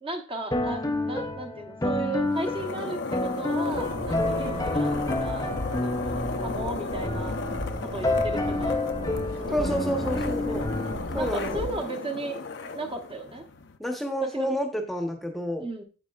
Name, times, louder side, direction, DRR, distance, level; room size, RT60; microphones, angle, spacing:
voice 1, 0.0-5.5 5.8-7.4 7.8-8.8 9.4-10.7 11.1-12.4 12.7-13.4 14.2-14.5 15.6-15.8, right 2 dB, 25° right, 3 dB, 1.1 m, -36 dB
sound 1, 0.5-10.9, left 2 dB, 15° left, 0.5 m, -29 dB
sound 2, 2.2-13.8, left 3 dB, 60° left, 0.7 m, -35 dB
sound 3, 3.7-11.7, left 1 dB, 70° right, 2.3 m, -37 dB
voice 2, 9.5-10.7 11.1-11.6 13.8-15.6, equal, ahead, 3 dB, 1.0 m, -29 dB
9.0 x 8.0 x 2.4 m, 0.35 s
head